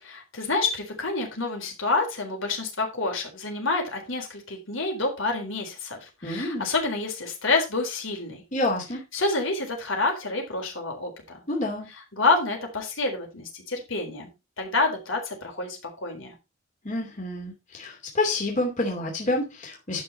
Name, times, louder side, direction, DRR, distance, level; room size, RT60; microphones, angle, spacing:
voice 1, 0.0-8.4 9.1-11.4 12.1-14.3 14.6-16.3, left 3 dB, 75° left, 2 dB, 4.0 m, -28 dB
voice 2, 6.2-6.7 8.5-9.0 11.5-11.9 16.8-20.0, left 2 dB, 40° left, 0 dB, 2.9 m, -28 dB
11.0 x 6.5 x 4.3 m, 0.25 s
head